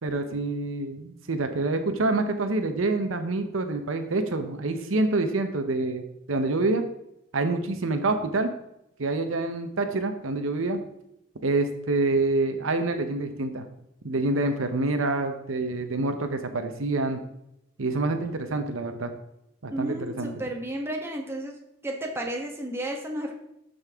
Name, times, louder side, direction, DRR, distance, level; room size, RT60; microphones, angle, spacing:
voice 1, 0.0-6.8 7.3-8.5 9.0-10.8 11.4-13.7 14.0-17.2 17.8-19.1 19.6-20.3, right 2 dB, 85° right, 7 dB, 0.8 m, -27 dB
voice 2, 19.7-21.5 21.8-23.3, right 1 dB, 10° right, 1 dB, 1.2 m, -32 dB
12.5 x 5.4 x 3.6 m, 0.83 s
head